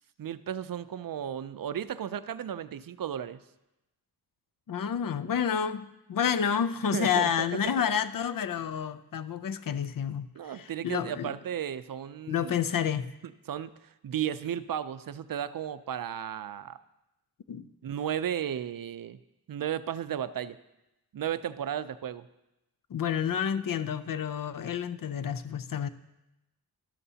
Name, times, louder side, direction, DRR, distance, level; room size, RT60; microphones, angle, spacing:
voice 1, 0.2-3.4 6.9-7.3 10.4-12.6 13.5-16.8 17.8-19.2 19.5-20.6 21.1-22.3, right 9 dB, 65° right, 14 dB, 0.5 m, -34 dB
voice 2, 4.7-10.3 10.5-11.4 12.3-13.1 17.5-17.7 22.9-25.9, left 8 dB, 60° left, 13 dB, 0.5 m, -29 dB
12.5 x 12.5 x 2.8 m, 0.94 s
wide cardioid pair, 110°, 37 cm